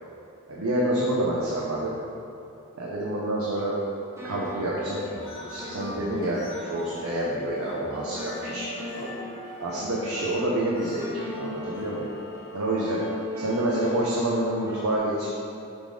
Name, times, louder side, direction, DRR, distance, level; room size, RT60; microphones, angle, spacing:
voice 1, 0.5-1.9 2.8-3.7 4.2-5.0 5.5-6.4 6.7-8.6 8.9-9.1 9.6-12.1 12.5-13.0 13.4-15.3, right 1 dB, 90° right, -5 dB, 0.9 m, -27 dB
sound 1, 4.2-14.9, equal, 15° right, 0.9 m, -40 dB
sound 2, 4.8-13.1, equal, 70° left, 1.4 m, -42 dB
7.2 x 4.1 x 5.0 m, 2.8 s
head